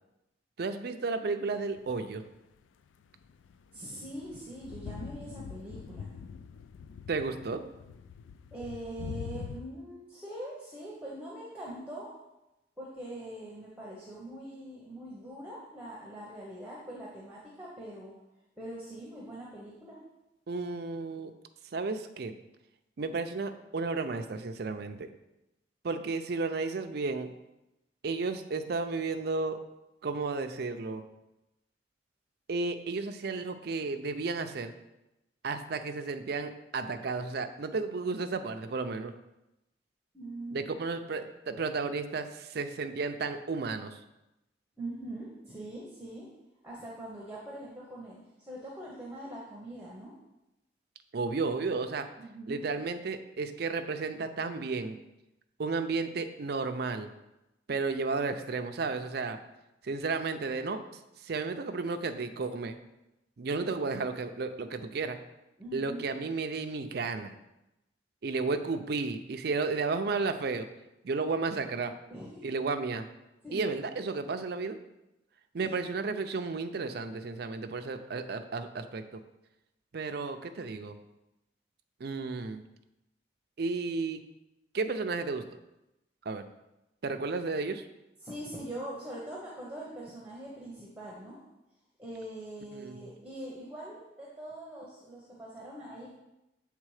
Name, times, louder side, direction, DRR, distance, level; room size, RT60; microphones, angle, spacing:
voice 1, 0.6-2.2 7.1-7.6 20.5-21.3 21.6-22.3 23.0-25.1 25.8-27.3 28.0-29.6 30.0-31.0 32.5-34.7 35.4-39.1 40.5-44.0 51.1-52.1 52.5-55.0 55.6-57.1 57.7-59.4 59.8-62.8 63.4-65.2 65.7-67.3 68.2-70.7 71.0-71.9 72.4-73.1 73.5-74.8 75.5-79.2 79.9-81.0 82.0-82.6 83.6-84.2 84.7-85.4 86.2-86.5 87.0-87.9 92.7-93.1, right 4 dB, 55° right, 8 dB, 0.5 m, -33 dB
sound 1, 1.8-2.3 3.2-9.6, left 6 dB, 80° left, 0.3 m, -44 dB
voice 2, 3.7-6.1 8.5-12.2 12.8-18.2 18.6-20.0 40.1-40.6 44.8-46.4 46.6-50.2 52.2-52.6 65.6-66.1 72.1-72.4 73.4-73.6 75.6-75.9 88.2-91.4 92.0-96.1, right 1 dB, 5° right, -5 dB, 0.9 m, -43 dB
7.4 x 3.4 x 4.8 m, 0.93 s
head